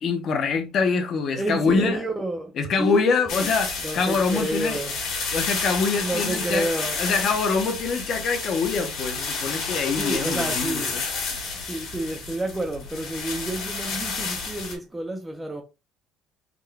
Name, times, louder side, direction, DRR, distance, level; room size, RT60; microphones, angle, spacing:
voice 1, 0.0-2.0 2.6-4.8 5.3-6.7 7.0-11.0, left 4 dB, 40° left, 0.6 m, -24 dB
voice 2, 1.3-3.5 3.8-5.0 6.0-7.0 10.0-11.0 11.5-15.6, right 1 dB, 10° right, 0.4 m, -30 dB
sound 1, 3.3-14.8, left 4 dB, 60° left, 1.6 m, -30 dB
3.7 x 2.2 x 3.3 m
cardioid pair, 160°, 0 cm